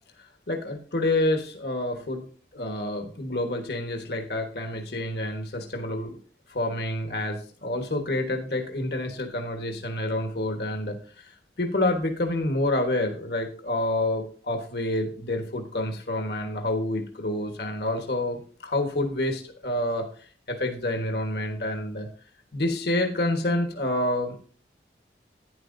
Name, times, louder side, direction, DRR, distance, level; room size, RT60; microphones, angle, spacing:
voice 1, 0.2-2.2 2.5-6.2 6.5-22.1 22.5-24.4, left 1 dB, 65° left, 4 dB, 1.3 m, -28 dB
11.0 x 9.8 x 2.6 m, 0.42 s
head